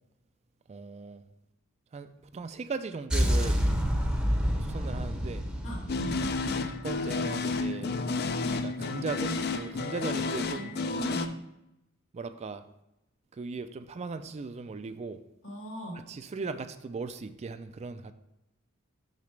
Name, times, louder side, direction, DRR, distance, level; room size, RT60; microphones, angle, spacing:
voice 1, 0.7-1.2 1.9-3.6 4.6-5.4 6.8-7.9 8.6-10.7 12.1-12.6 13.3-15.2 16.0-18.1, right 4 dB, 30° right, 10 dB, 0.3 m, -38 dB
sound 1, 3.1-7.2, equal, 5° right, 0.7 m, -28 dB
voice 2, 5.6-6.2 10.5-11.4 15.4-16.0, right 1 dB, 70° left, -2 dB, 2.6 m, -38 dB
sound 2, 5.9-11.3, left 3 dB, 50° left, 0.5 m, -31 dB
6.6 x 6.0 x 3.2 m, 0.88 s
head